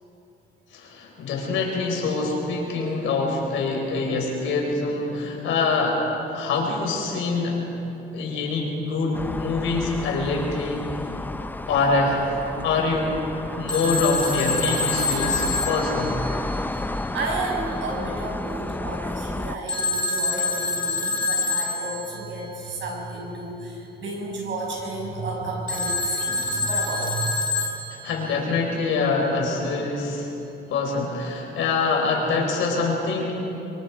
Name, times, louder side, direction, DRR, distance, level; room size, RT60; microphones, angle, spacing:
voice 1, 0.7-6.0 6.3-7.7 8.1-10.8 11.7-12.3 12.6-13.2 13.6-16.1 28.0-30.3 30.7-33.3, left 3 dB, 85° left, 0 dB, 4.6 m, -25 dB
sound 1, 9.1-19.6, left 2 dB, 10° left, 0.5 m, -31 dB
Telephone, 13.7-16.8 19.7-22.2 25.7-28.3, left 3 dB, 20° right, 2.5 m, -26 dB
voice 2, 16.9-27.5, right 2 dB, 70° right, -1 dB, 6.4 m, -32 dB
24.0 x 23.0 x 4.9 m, 3.0 s
cardioid pair, 90°, 20 cm